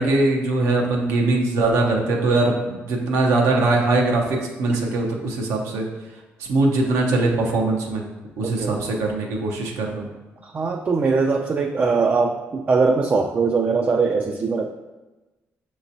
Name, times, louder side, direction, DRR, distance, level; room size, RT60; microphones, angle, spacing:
voice 1, 0.0-5.9 6.5-8.0 8.4-10.1, right 2 dB, 85° right, 0 dB, 0.7 m, -21 dB
voice 2, 8.4-8.8 10.4-14.8, right 4 dB, 35° right, 3 dB, 0.4 m, -21 dB
5.8 x 2.9 x 2.7 m, 1.1 s
supercardioid pair, 70°, 5 cm